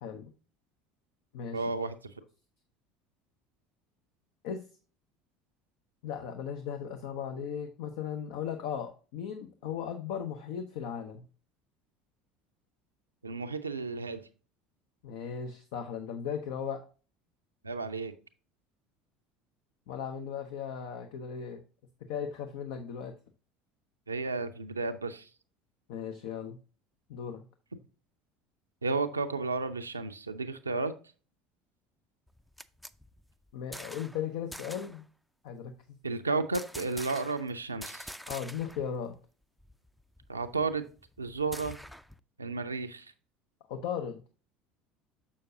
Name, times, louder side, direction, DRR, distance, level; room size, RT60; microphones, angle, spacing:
voice 1, 1.5-1.9 13.2-14.2 17.6-18.1 24.1-25.3 28.8-30.9 36.0-38.1 40.3-40.8 41.2-41.8 42.4-43.1, right 3 dB, 90° right, 8 dB, 0.5 m, -32 dB
voice 2, 6.0-11.2 15.0-16.8 19.9-21.6 22.1-23.1 25.9-26.6 27.1-27.4 33.5-35.0 35.4-36.0 38.3-39.2 43.7-44.2, left 8 dB, 65° left, 6 dB, 0.7 m, -37 dB
sound 1, 32.3-34.2 34.5-35.0 36.5-37.5 37.8-38.9 39.2-39.3 39.6-42.2, equal, ahead, 0.4 m, -46 dB
7.0 x 6.5 x 2.7 m, 0.36 s
figure-of-eight pair, 65°, 0 cm